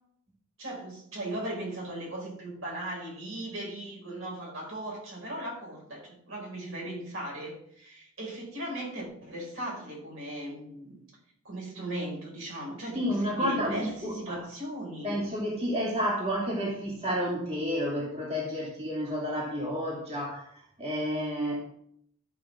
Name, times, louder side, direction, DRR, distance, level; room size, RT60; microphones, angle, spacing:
voice 1, 0.6-11.0 11.5-15.2, right 1 dB, 70° right, -3 dB, 5.2 m, -38 dB
voice 2, 12.9-14.4 15.0-20.5 20.8-21.6, equal, 30° right, -4 dB, 2.7 m, -30 dB
13.0 x 5.6 x 6.1 m, 0.70 s
head